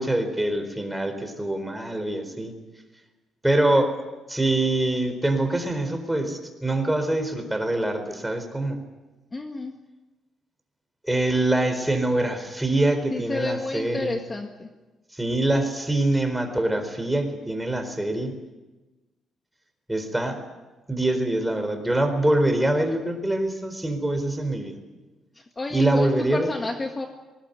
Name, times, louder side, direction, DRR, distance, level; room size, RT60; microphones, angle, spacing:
voice 1, 0.0-2.5 3.4-4.0 4.3-8.8 11.0-14.2 15.1-18.4 19.9-20.4 20.9-24.8 25.7-26.5, right 1 dB, 5° right, 7 dB, 4.3 m, -24 dB
voice 2, 9.3-9.8 13.1-14.7 25.3-27.1, left 2 dB, 25° left, 4 dB, 1.8 m, -31 dB
20.0 x 19.5 x 9.4 m, 1.2 s
cardioid pair, 90°, 0 cm